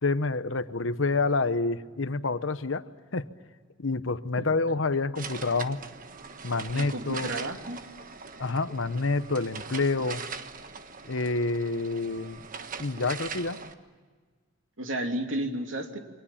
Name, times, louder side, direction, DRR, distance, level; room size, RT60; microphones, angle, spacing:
voice 1, 0.0-3.3 3.8-5.8 6.4-7.4 8.4-10.2 11.1-12.4 12.8-13.6, left 3 dB, 75° left, 12 dB, 1.0 m, -28 dB
sound 1, 5.1-13.7, right 5 dB, 45° right, 1.3 m, -41 dB
voice 2, 6.7-7.8 14.8-16.0, right 1 dB, 75° right, 4 dB, 2.9 m, -32 dB
29.0 x 25.0 x 7.3 m, 1.5 s
head